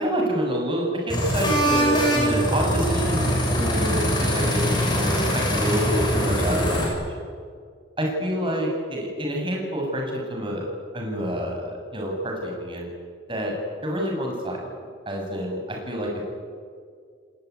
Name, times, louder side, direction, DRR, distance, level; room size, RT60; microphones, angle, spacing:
voice 1, 0.0-7.0 8.0-10.6 10.9-12.9 13.3-13.5 13.8-14.6 15.1-16.2, equal, 25° right, 0 dB, 7.5 m, -27 dB
sound 1, 1.1-6.9, equal, 25° left, 7.5 m, -23 dB
30.0 x 19.5 x 9.7 m, 2.1 s
head